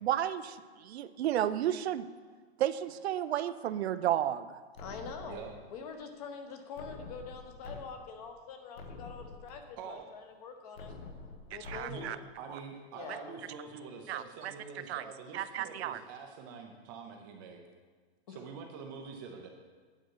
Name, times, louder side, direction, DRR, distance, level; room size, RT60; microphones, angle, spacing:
voice 1, 0.0-2.1 2.6-4.6 11.5-12.2 12.5-12.6 14.1-14.5 14.9-15.0 15.3-16.0, right 11 dB, 75° right, 12 dB, 0.6 m, -32 dB
sound 1, 4.8-5.8 6.8-7.8 8.2-8.3 8.7-9.8 10.8-11.8, left 3 dB, 65° left, 1.3 m, -47 dB
voice 2, 4.8-5.4 5.7-11.0 11.5-12.1 12.9-13.3 18.3-18.4, left 5 dB, 35° left, 5 dB, 1.0 m, -45 dB
voice 3, 9.8-10.1 11.9-17.7 18.3-19.5, right 5 dB, 20° right, 3 dB, 0.5 m, -46 dB
8.9 x 8.1 x 4.7 m, 1.5 s
supercardioid pair, 170°, 32 cm